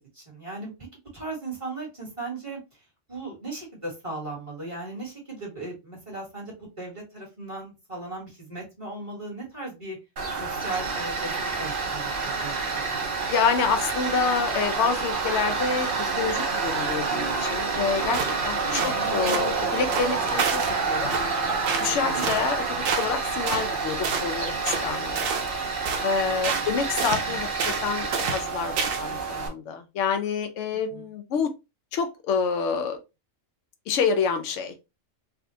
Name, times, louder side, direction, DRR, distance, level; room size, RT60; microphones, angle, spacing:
voice 1, 0.1-0.7 1.1-2.6 3.1-10.0 10.4-11.3 11.6-12.6 12.9-13.3 18.6-19.1 22.1-22.5 26.4-26.7 27.3-27.4 30.9-31.1, right 2 dB, 25° right, 1.6 m, -37 dB
Tools, 10.2-29.5, right 4 dB, 50° right, 0.8 m, -28 dB
voice 2, 13.3-15.9 16.2-21.2 21.8-25.3 26.0-31.5 31.9-33.0 33.9-34.8, left 6 dB, 70° left, 0.8 m, -28 dB
sound 1, 18.1-18.4 18.7-19.0 19.3-19.5 19.9-20.7 21.1-21.3 21.7-21.9 22.2-22.5 22.9-23.2 23.5-23.7 24.0-24.3 24.7-24.9 25.2-25.5 25.9-26.1 26.4-26.7 27.0-27.2 27.6-27.9 28.1-28.5 28.8-29.1, right 6 dB, 90° right, 1.1 m, -28 dB
3.5 x 2.4 x 2.7 m
omnidirectional pair, 1.3 m